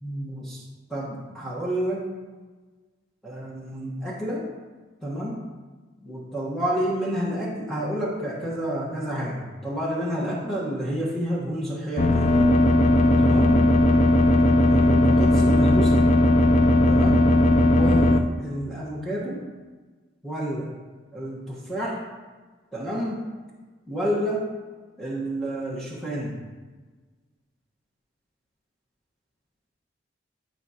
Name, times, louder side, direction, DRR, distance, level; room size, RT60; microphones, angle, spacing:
voice 1, 0.0-0.6 0.9-2.0 3.2-4.5 5.0-5.4 6.0-12.3 13.2-13.6 14.7-16.0 16.9-17.2 17.7-19.4 20.2-20.7 21.1-22.0 22.7-23.2 23.9-24.5 25.0-26.4, equal, ahead, -6 dB, 1.2 m, -29 dB
sound 1, 12.0-18.2, left 1 dB, 35° left, 0.5 m, -18 dB
14.0 x 5.0 x 2.9 m, 1.3 s
head